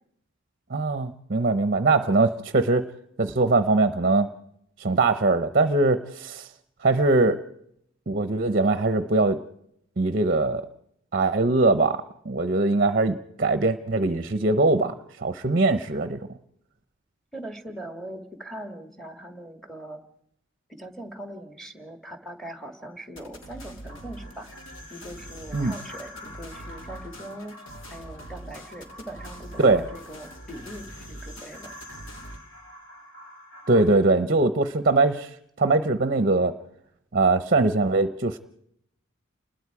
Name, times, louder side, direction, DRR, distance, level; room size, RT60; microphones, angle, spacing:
voice 1, 0.7-2.9 3.2-4.3 4.8-6.5 6.8-7.4 8.1-9.4 10.0-10.6 11.1-16.2 25.5-25.7 29.6-29.8 33.7-35.3 35.6-36.5 37.1-38.4, right 3 dB, 45° right, 11 dB, 0.7 m, -22 dB
voice 2, 17.3-20.0 20.7-24.5 24.9-27.6 27.9-31.7, right 1 dB, ahead, 7 dB, 1.9 m, -41 dB
sound 1, 23.2-32.4, right 1 dB, 80° left, 2.7 m, -43 dB
sound 2, 23.9-33.9, left 1 dB, 65° left, 7.3 m, -46 dB
29.0 x 21.0 x 4.8 m, 0.75 s
head